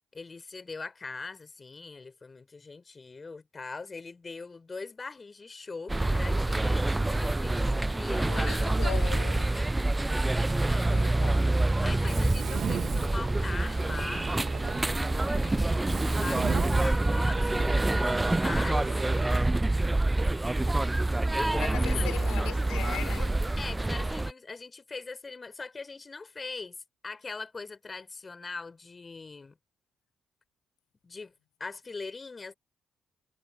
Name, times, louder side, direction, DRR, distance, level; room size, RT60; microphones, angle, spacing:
voice 1, 0.1-8.8 9.8-10.9 11.8-14.3 15.3-19.0 21.3-22.1 23.6-26.8 27.0-29.6 31.0-31.3 31.6-32.5, left 4 dB, 35° left, 3.2 m, -41 dB
sound 1, 5.9-24.3, right 2 dB, 20° right, 0.4 m, -27 dB
voice 2, 8.2-9.5 10.8-11.6 21.6-23.4, left 15 dB, 75° left, 3.9 m, -39 dB
Mechanisms, 11.6-19.2, right 8 dB, 60° right, 0.9 m, -38 dB
hypercardioid pair, 45°, 0 cm